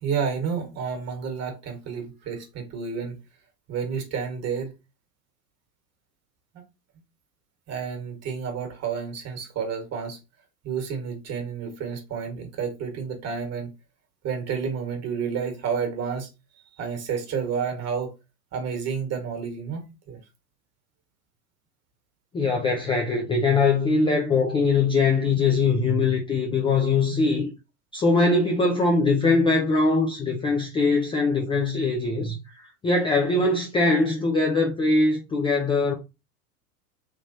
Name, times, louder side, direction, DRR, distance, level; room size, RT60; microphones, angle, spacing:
voice 1, 0.0-3.2 3.7-4.7 7.7-10.2 10.6-13.7 14.2-16.3 16.8-18.1 18.5-20.2, right 6 dB, 35° right, 1.3 m, -30 dB
voice 2, 22.3-27.5 27.9-35.9, left 3 dB, 10° left, 0.4 m, -22 dB
3.3 x 3.0 x 2.6 m
hypercardioid pair, 95°, 46 cm